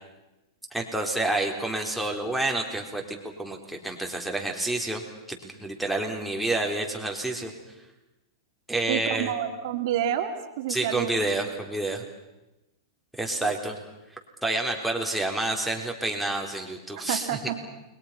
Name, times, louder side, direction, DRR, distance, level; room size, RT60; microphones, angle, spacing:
voice 1, 0.7-7.5 8.7-9.3 10.7-12.0 13.2-13.8 14.4-17.3, right 2 dB, ahead, 0 dB, 4.0 m, -29 dB
voice 2, 8.9-11.1 13.4-13.5 16.9-17.7, right 10 dB, 60° right, 5 dB, 2.4 m, -29 dB
29.5 x 22.0 x 5.9 m, 0.97 s
hypercardioid pair, 120°, 2 cm